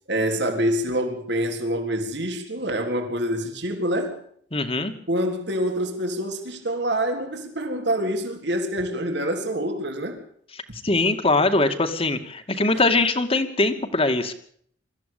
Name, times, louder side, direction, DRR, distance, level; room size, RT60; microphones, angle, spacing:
voice 1, 0.1-4.2 5.1-10.2, equal, 65° right, 3.8 m, -26 dB
voice 2, 4.5-4.9 10.7-14.3, left 2 dB, 30° left, 2.4 m, -22 dB
24.5 x 14.5 x 8.6 m
head